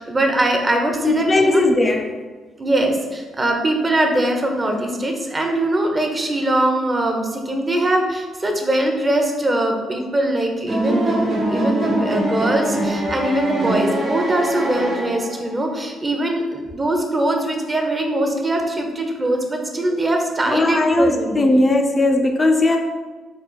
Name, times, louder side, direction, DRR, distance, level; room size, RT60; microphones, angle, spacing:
voice 1, 0.0-1.6 2.6-21.4, right 1 dB, 25° right, 3 dB, 0.6 m, -21 dB
voice 2, 1.0-2.1 20.5-22.8, left 2 dB, 30° left, 3 dB, 0.3 m, -17 dB
sound 1, 10.7-15.5, right 1 dB, 50° right, 1.1 m, -23 dB
3.8 x 2.4 x 3.8 m, 1.3 s
cardioid pair, 90°, 0 cm